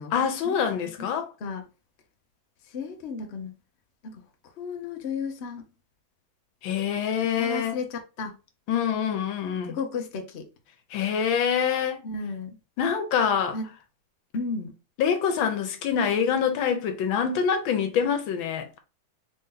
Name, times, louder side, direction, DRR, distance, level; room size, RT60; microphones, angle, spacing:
voice 1, 0.1-1.3 6.6-7.8 8.7-9.8 10.9-12.0 12.8-13.6 15.0-18.8, left 7 dB, 85° left, 1.5 m, -25 dB
voice 2, 2.7-3.5 4.0-4.2 4.6-5.6 7.4-8.3 9.7-10.5 12.0-12.6 13.5-13.7 14.3-14.7, left 4 dB, 55° left, 0.8 m, -33 dB
3.8 x 2.7 x 3.7 m
omnidirectional pair, 2.1 m